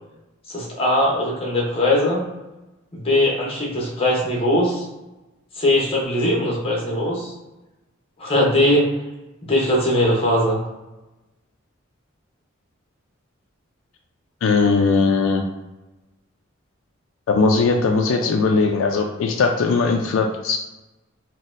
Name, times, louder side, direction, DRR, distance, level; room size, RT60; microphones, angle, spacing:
voice 1, 0.5-2.3 2.9-4.9 5.6-7.3 8.2-8.9 9.4-10.6, left 1 dB, 30° left, -3 dB, 0.8 m, -20 dB
voice 2, 14.4-15.4 17.3-20.6, left 4 dB, 70° left, 3 dB, 0.3 m, -19 dB
4.0 x 2.1 x 2.5 m, 1.0 s
head